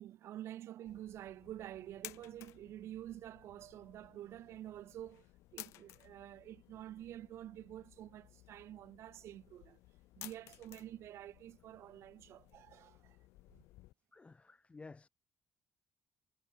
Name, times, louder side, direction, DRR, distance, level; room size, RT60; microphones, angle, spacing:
voice 1, 0.0-5.3 5.5-9.8 10.1-13.2 13.5-13.6, right 12 dB, 80° right, 1.6 m, -49 dB
sound 1, 0.8-13.9, left 18 dB, 90° left, 0.6 m, -57 dB
voice 2, 14.1-15.1, left 3 dB, 25° left, 0.5 m, -53 dB
supercardioid pair, 65°, 5 cm